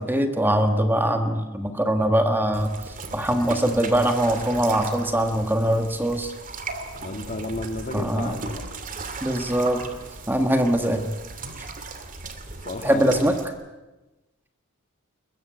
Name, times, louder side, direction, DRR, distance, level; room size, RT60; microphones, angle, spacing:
voice 1, 0.0-2.7 3.1-6.3 7.9-8.4 9.2-9.8 10.3-11.1 12.8-13.3, right 1 dB, 10° right, 6 dB, 1.6 m, -22 dB
sound 1, 2.5-13.5, right 3 dB, 40° right, 2.5 m, -37 dB
voice 2, 7.0-8.7 12.6-13.1, left 2 dB, 35° left, 6 dB, 2.1 m, -32 dB
22.5 x 21.5 x 9.0 m, 1.1 s
head